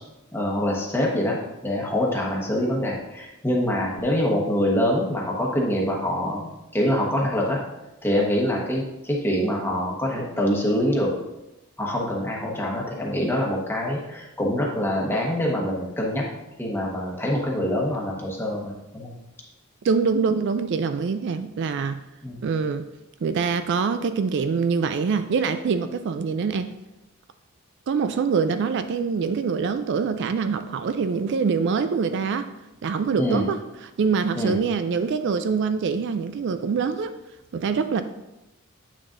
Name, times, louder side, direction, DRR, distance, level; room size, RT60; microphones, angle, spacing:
voice 1, 0.3-7.6 8.0-11.1 11.8-16.3 16.6-19.1 22.2-22.4 33.2-33.4 34.4-34.6, left 1 dB, 10° left, -2 dB, 1.2 m, -25 dB
voice 2, 19.8-22.0 22.4-22.8 23.2-26.7 27.9-32.5 32.8-37.1 37.5-38.0, right 5 dB, 55° right, 10 dB, 0.3 m, -24 dB
8.6 x 6.3 x 2.6 m, 0.97 s
head